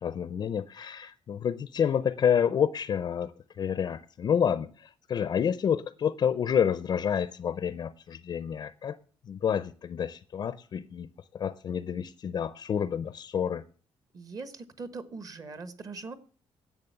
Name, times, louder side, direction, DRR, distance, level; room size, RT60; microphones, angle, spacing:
voice 1, 0.0-9.0 9.3-11.1 11.3-13.6, left 8 dB, 40° left, 0.5 m, -29 dB
voice 2, 14.1-16.1, right 4 dB, 35° right, 1.3 m, -41 dB
11.0 x 8.2 x 6.7 m
wide cardioid pair, 175°, 10 cm